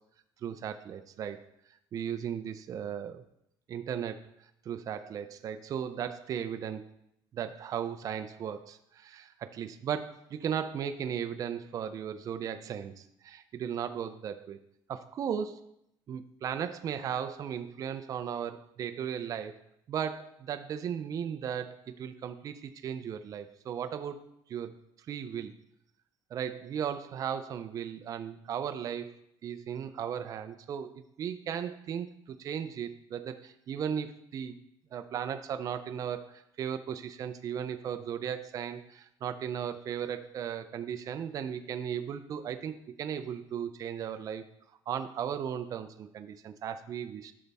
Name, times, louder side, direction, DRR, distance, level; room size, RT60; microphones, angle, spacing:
voice 1, 0.4-1.5 1.9-3.2 3.7-4.2 4.7-6.9 7.3-14.6 14.9-15.6 16.1-19.6 19.9-24.2 24.5-24.7 25.1-25.5 26.3-29.2 29.4-34.6 34.9-44.4 44.9-47.3, right 8 dB, 40° right, 8 dB, 0.5 m, -36 dB
12.0 x 5.3 x 3.5 m, 0.78 s
cardioid pair, 145°, 9 cm